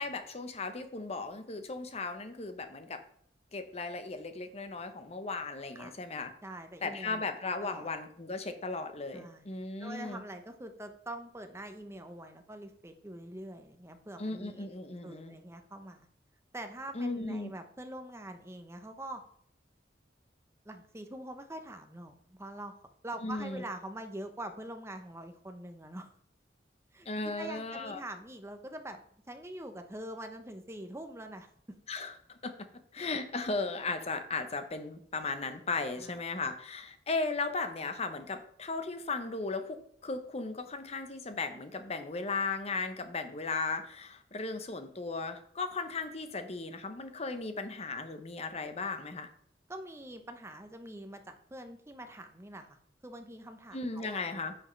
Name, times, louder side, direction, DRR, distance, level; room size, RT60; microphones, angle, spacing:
voice 1, 0.0-3.0 3.5-6.3 6.8-10.2 14.2-15.4 16.9-17.5 23.2-23.6 27.0-28.0 31.9-32.5 32.9-39.8 40.0-49.3 53.7-54.5, left 3 dB, 35° left, 8 dB, 0.9 m, -36 dB
voice 2, 6.4-7.3 7.6-7.9 9.1-9.5 9.8-14.7 15.0-16.1 16.5-19.2 20.6-22.7 23.0-26.1 26.9-29.0 29.3-31.8 36.0-36.2 49.7-54.2, right 1 dB, 15° right, 6 dB, 0.9 m, -44 dB
9.9 x 6.3 x 3.3 m, 0.67 s
head